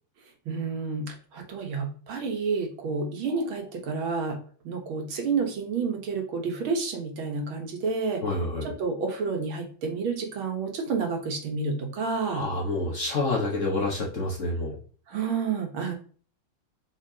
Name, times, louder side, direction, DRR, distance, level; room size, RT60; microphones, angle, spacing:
voice 1, 0.5-4.4 4.6-8.2 8.6-12.5 15.1-15.9, right 4 dB, 75° right, 3 dB, 2.1 m, -30 dB
voice 2, 8.2-8.7 12.3-14.8, left 2 dB, 40° left, -2 dB, 1.3 m, -28 dB
7.6 x 4.4 x 2.8 m, 0.42 s
omnidirectional pair, 2.3 m